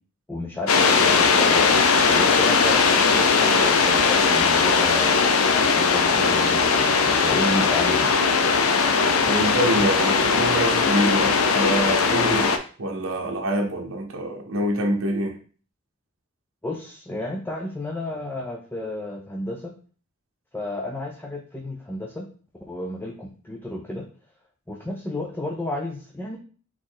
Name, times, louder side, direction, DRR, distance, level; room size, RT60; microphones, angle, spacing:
voice 1, 0.3-8.1 16.6-19.7 20.5-22.3 22.7-24.1 24.7-26.4, left 1 dB, 10° left, 0.5 m, -32 dB
sound 1, 0.7-12.6, left 5 dB, 80° left, 0.5 m, -19 dB
voice 2, 9.3-12.5 12.8-15.4, right 1 dB, 65° right, 0.8 m, -25 dB
4.1 x 3.1 x 3.9 m
head